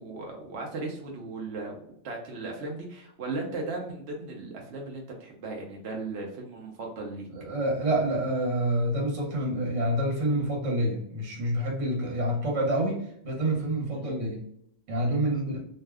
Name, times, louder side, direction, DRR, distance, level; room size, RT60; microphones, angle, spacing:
voice 1, 0.0-1.8 2.0-7.3 13.9-14.1, right 3 dB, 65° right, 0 dB, 0.9 m, -36 dB
voice 2, 7.3-14.4 14.9-15.6, right 1 dB, 80° right, -2 dB, 1.3 m, -27 dB
2.6 x 2.2 x 3.4 m, 0.70 s
omnidirectional pair, 1.3 m